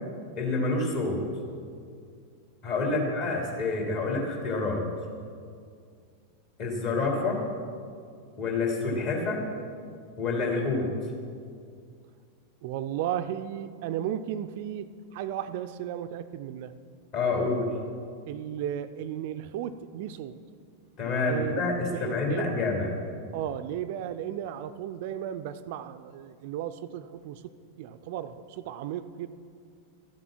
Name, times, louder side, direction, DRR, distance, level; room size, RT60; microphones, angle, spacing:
voice 1, 0.4-1.2 2.6-4.8 6.6-7.4 8.4-9.4 10.2-10.9 17.1-17.7 21.0-22.9, left 3 dB, 45° left, -1 dB, 2.9 m, -28 dB
voice 2, 12.6-14.9 15.1-16.7 18.3-20.4 21.3-21.6 21.9-22.6 23.3-27.5 27.8-29.3, right 10 dB, 50° right, 11 dB, 0.4 m, -34 dB
13.5 x 7.5 x 6.0 m, 2.2 s
figure-of-eight pair, 90°, 0 cm